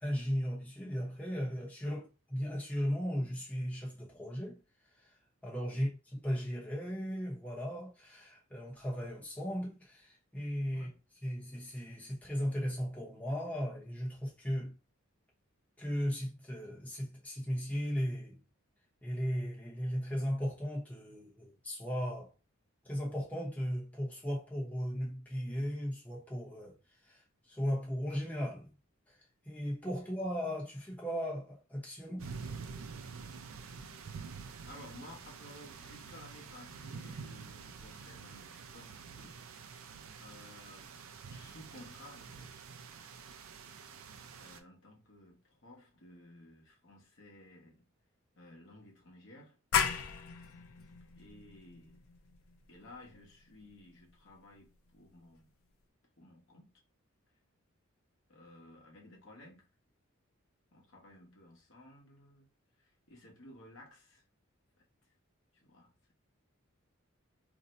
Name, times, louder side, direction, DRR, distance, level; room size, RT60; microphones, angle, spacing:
voice 1, 0.0-4.6 5.0-5.1 5.4-6.0 6.2-10.9 11.2-14.8 15.8-18.4 19.0-22.3 22.8-26.7 27.0-28.7 29.1-29.2 29.4-32.3, equal, 5° left, 0.8 m, -36 dB
sound 1, 32.2-44.6, right 5 dB, 75° right, 0.4 m, -47 dB
voice 2, 34.6-39.7 40.2-40.9 41.3-42.7 44.3-47.9 48.4-49.6 51.2-52.0 52.7-55.5 56.2-56.7 58.3-59.7 60.7-62.5 62.8-64.2 64.8-64.9 65.5-65.9, left 1 dB, 60° left, 0.9 m, -55 dB
sound 2, 49.7-55.1, left 7 dB, 80° left, 0.4 m, -37 dB
2.6 x 2.1 x 3.9 m
head